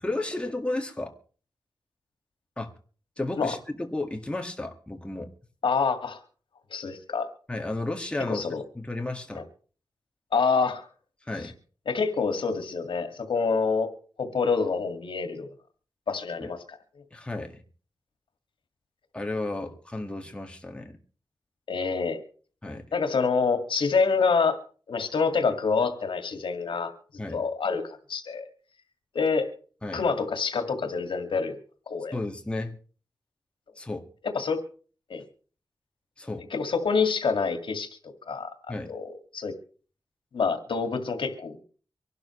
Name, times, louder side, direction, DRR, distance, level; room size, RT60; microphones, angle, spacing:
voice 1, 0.0-1.2 2.6-2.7 3.2-5.3 7.5-8.5 8.8-9.4 11.3-11.6 16.4-16.5 17.1-17.6 19.1-21.0 22.6-22.9 27.2-27.4 29.8-30.0 32.1-32.8 33.8-34.0 36.2-36.4 38.7-38.9, left 2 dB, 15° left, 1.9 m, -33 dB
voice 2, 5.6-6.2 6.7-7.3 8.3-8.6 9.3-9.4 10.3-10.9 11.9-13.9 14.2-15.5 16.1-16.8 21.7-22.2 22.9-24.6 24.9-26.9 27.3-28.5 29.1-29.5 29.9-31.6 31.9-32.2 34.3-34.6 35.1-35.2 36.5-38.5 38.9-39.5 40.3-41.6, left 5 dB, 85° left, 2.1 m, -27 dB
25.0 x 12.0 x 3.2 m
wide cardioid pair, 115°, 8 cm